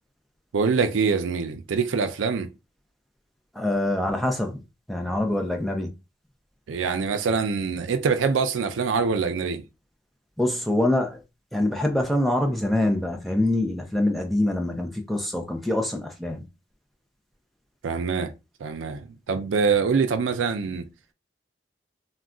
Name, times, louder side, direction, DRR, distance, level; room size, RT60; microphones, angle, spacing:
voice 1, 0.5-2.5 6.7-9.6 17.8-18.3 18.6-20.9, right 5 dB, 90° right, 0.4 m, -24 dB
voice 2, 3.6-4.6 4.9-5.9 10.4-11.2 11.5-16.4, left 1 dB, ahead, 0.4 m, -25 dB
2.3 x 2.2 x 3.6 m
head